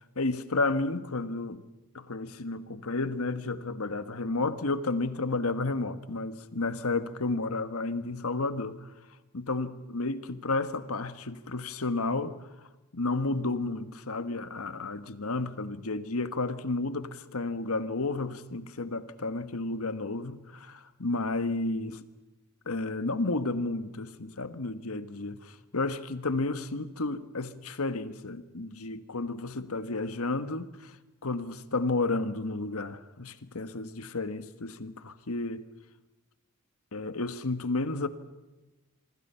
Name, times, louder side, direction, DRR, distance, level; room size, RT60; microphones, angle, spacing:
voice 1, 0.1-1.7 1.9-8.9 9.3-12.4 12.9-22.0 22.6-30.9 31.2-35.7 36.9-38.1, left 3 dB, 85° left, 1.4 m, -32 dB
26.5 x 24.5 x 5.7 m
head